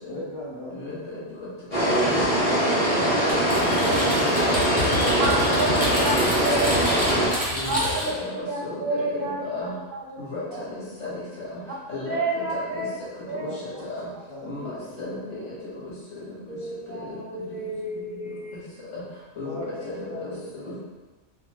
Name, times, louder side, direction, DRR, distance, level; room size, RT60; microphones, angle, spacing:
voice 1, 0.1-1.2 3.3-4.2 5.5-5.6 5.9-6.6 13.4-13.8 14.3-15.4 19.4-19.7 20.1-20.7, left 1 dB, 50° left, -8 dB, 0.3 m, -38 dB
sound 1, 1.7-7.3, right 1 dB, 25° left, 1.6 m, -22 dB
Typing, 3.3-8.2, left 1 dB, 10° right, 0.8 m, -29 dB
voice 2, 3.5-5.8 6.1-7.2 7.5-9.7 10.2-10.4 11.0-11.2 11.5-11.6 11.9-12.4 12.7-13.5 13.9-14.1 14.4-15.5 15.8-15.9 16.5-16.6 16.9-17.0 18.9-19.0 19.4-19.6 19.9-20.0 20.6-20.7, left 2 dB, 80° left, -9 dB, 1.7 m, -35 dB
voice 3, 5.2-5.7 6.0-6.1 6.4-6.7 7.7-8.1 8.5-9.4 9.9-10.2 10.5-10.6 12.0-12.9 13.3-13.6 16.6-18.6, right 2 dB, 55° right, -3 dB, 0.7 m, -29 dB
3.6 x 2.5 x 2.9 m, 1.2 s
omnidirectional pair, 1.3 m